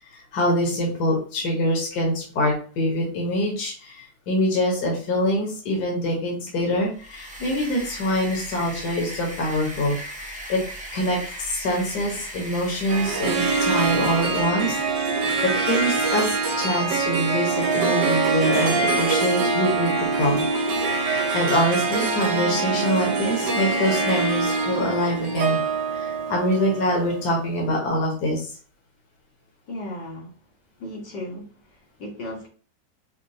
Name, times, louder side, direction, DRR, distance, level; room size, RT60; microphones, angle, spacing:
voice 1, 0.1-10.6 10.9-14.8 15.1-20.4 21.0-25.6 25.9-28.5, equal, 70° left, -1 dB, 1.6 m, -25 dB
sound 1, 6.9-14.6, right 1 dB, 10° right, 0.4 m, -38 dB
Harp, 12.9-27.4, right 4 dB, 80° right, 1.4 m, -24 dB
voice 2, 29.7-30.3 30.8-32.5, left 1 dB, 85° left, -3 dB, 2.0 m, -36 dB
5.1 x 2.2 x 2.7 m, 0.40 s
omnidirectional pair, 1.8 m